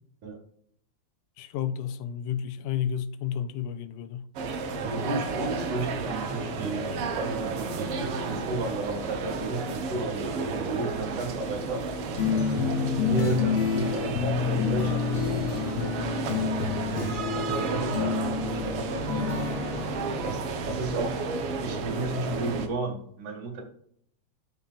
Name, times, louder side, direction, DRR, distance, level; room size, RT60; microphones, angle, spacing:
voice 1, 1.4-4.3, left 9 dB, 85° left, 2.1 m, -31 dB
sound 1, 4.4-22.7, right 4 dB, 65° right, 1.5 m, -32 dB
voice 2, 4.8-11.8 13.0-15.5 17.0-19.4 20.2-21.2 21.6-23.6, right 2 dB, 90° right, 3.3 m, -33 dB
sound 2, 12.2-20.6, left 6 dB, 65° left, 1.7 m, -29 dB
12.5 x 5.3 x 2.4 m
omnidirectional pair, 3.5 m